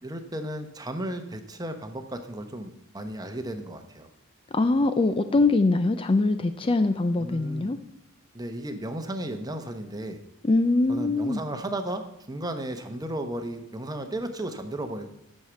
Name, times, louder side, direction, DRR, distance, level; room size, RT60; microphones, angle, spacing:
voice 1, 0.0-4.1 7.2-7.7 8.3-10.2 10.9-15.1, right 1 dB, 20° right, 7 dB, 0.9 m, -34 dB
voice 2, 4.5-7.8 10.4-11.4, left 2 dB, 25° left, 10 dB, 0.4 m, -23 dB
9.3 x 6.5 x 6.9 m, 0.82 s
head